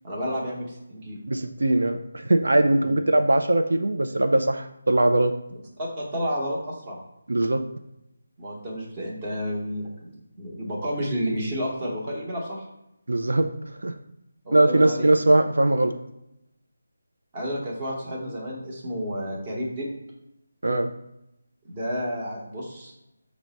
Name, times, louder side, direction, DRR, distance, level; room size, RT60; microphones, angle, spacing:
voice 1, 0.0-1.2 2.8-3.0 5.8-7.0 8.4-12.6 14.4-15.1 17.3-19.9 21.6-22.9, equal, 25° right, -4 dB, 0.8 m, -31 dB
voice 2, 1.3-5.3 7.3-7.6 13.1-13.5 13.8-13.9 14.5-15.9 20.6-20.9, right 1 dB, 90° right, 6 dB, 0.3 m, -21 dB
4.5 x 2.0 x 4.0 m, 0.87 s
figure-of-eight pair, 170°, 0 cm